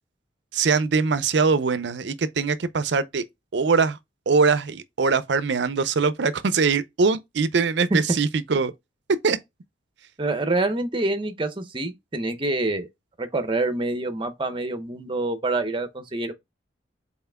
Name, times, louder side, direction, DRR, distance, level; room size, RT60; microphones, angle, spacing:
voice 1, 0.5-3.2 3.5-4.0 4.3-8.7 9.2-9.4, right 4 dB, 65° right, 0.5 m, -22 dB
voice 2, 10.2-12.9 13.2-16.3, right 2 dB, 25° right, 0.7 m, -26 dB
5.6 x 4.2 x 2.2 m
head